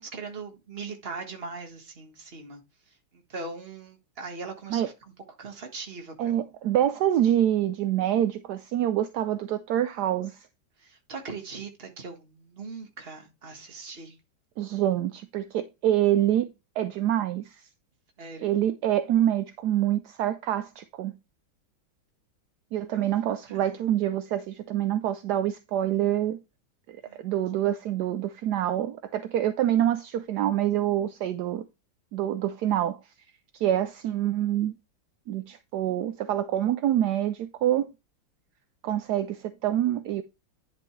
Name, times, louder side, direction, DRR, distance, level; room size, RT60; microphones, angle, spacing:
voice 1, 0.0-2.6 3.3-4.9 5.4-6.4 10.8-14.1 18.2-18.5 22.9-23.1 23.5-23.7 27.0-27.2, right 4 dB, 30° right, 1.6 m, -40 dB
voice 2, 6.2-10.5 14.6-16.5 16.8-17.7 18.4-21.1 22.7-26.4 26.9-31.6 32.1-33.0 33.5-34.7 35.3-37.9 38.8-40.2, right 11 dB, 70° right, 1.0 m, -26 dB
10.5 x 5.3 x 3.2 m
omnidirectional pair, 2.2 m